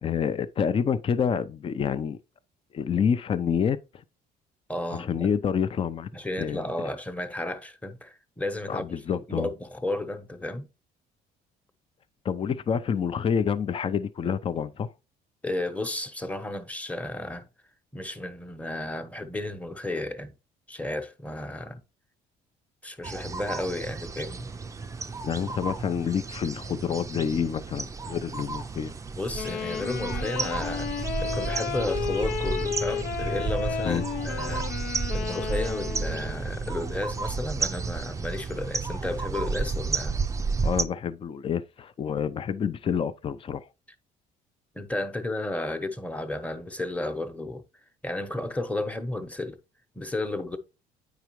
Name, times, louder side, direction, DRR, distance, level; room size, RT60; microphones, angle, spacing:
voice 1, 0.0-2.2 2.7-3.8 4.9-6.1 6.4-6.7 8.7-9.5 12.2-14.9 25.2-28.9 33.8-34.0 40.6-43.7, left 7 dB, 35° left, 0.5 m, -28 dB
voice 2, 4.7-5.3 6.1-8.9 9.3-10.7 15.4-17.5 17.9-20.3 20.7-21.8 22.8-24.5 29.1-30.9 31.2-34.7 35.1-40.3 44.7-47.6 48.0-49.6 49.9-50.6, left 2 dB, 10° left, 1.0 m, -33 dB
sound 1, 23.0-40.9, right 4 dB, 20° right, 0.5 m, -32 dB
Wind instrument woodwind instrument, 29.3-36.5, left 7 dB, 70° left, 0.7 m, -33 dB
9.2 x 4.8 x 3.1 m
cardioid pair, 110°, 17 cm